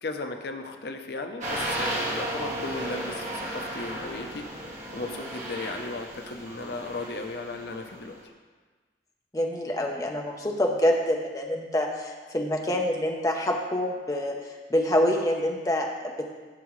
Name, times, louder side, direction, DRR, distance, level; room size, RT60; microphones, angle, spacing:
voice 1, 0.0-4.5 4.9-8.1, left 3 dB, 65° left, 5 dB, 0.6 m, -36 dB
sound 1, 1.4-8.1, right 1 dB, 40° right, 2.1 m, -34 dB
voice 2, 9.3-14.3 14.7-16.3, left 1 dB, 20° left, 1 dB, 0.7 m, -26 dB
11.5 x 7.4 x 3.1 m, 1.4 s
head